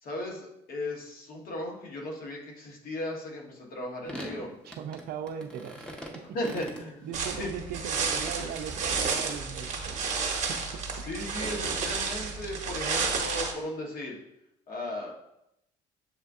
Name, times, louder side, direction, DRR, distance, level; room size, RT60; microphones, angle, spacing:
voice 1, 0.0-4.5 6.3-7.1 7.4-7.5 11.0-14.2 14.7-15.2, left 1 dB, 65° left, 1.1 m, -36 dB
sound 1, 4.0-7.5 8.1-9.4, equal, 5° left, 0.6 m, -42 dB
voice 2, 4.7-5.9 7.0-10.0 10.5-10.8, right 8 dB, 65° right, 0.4 m, -38 dB
sound 2, 7.1-13.5, right 5 dB, 45° right, 0.8 m, -31 dB
7.2 x 2.6 x 2.3 m
cardioid pair, 110°, 17 cm